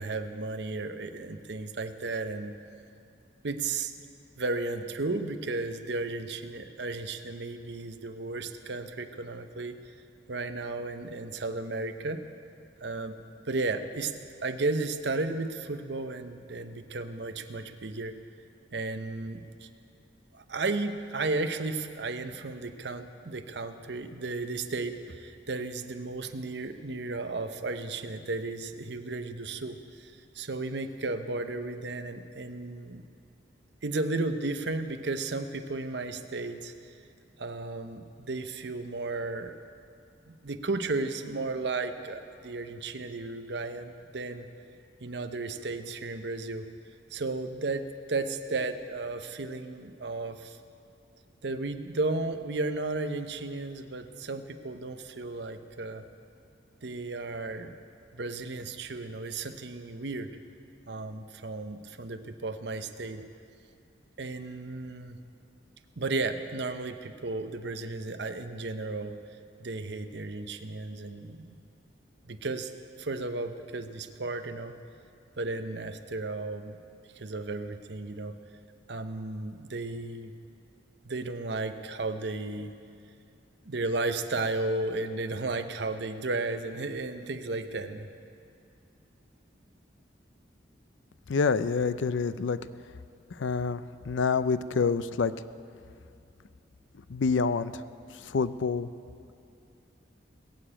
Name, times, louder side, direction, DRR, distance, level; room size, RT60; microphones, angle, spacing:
voice 1, 0.0-2.6 3.4-3.9 4.4-9.8 10.3-12.2 12.8-13.2 13.5-14.1 14.4-18.1 18.7-19.7 20.3-33.0 33.8-37.0 37.4-39.6 40.3-44.5 45.0-46.7 47.1-50.6 51.4-56.0 56.8-57.8 58.1-60.3 60.9-63.2 64.2-65.2 66.0-69.2 69.6-71.5 72.3-72.7 73.0-74.8 75.4-76.8 77.1-78.4 78.9-80.3 81.0-82.8 83.6-88.1, right 3 dB, 65° right, 8 dB, 0.8 m, -34 dB
voice 2, 91.3-92.6 93.4-95.3 97.1-97.7 98.2-98.9, left 5 dB, 85° left, 14 dB, 0.5 m, -27 dB
20.5 x 7.0 x 8.7 m, 2.5 s
head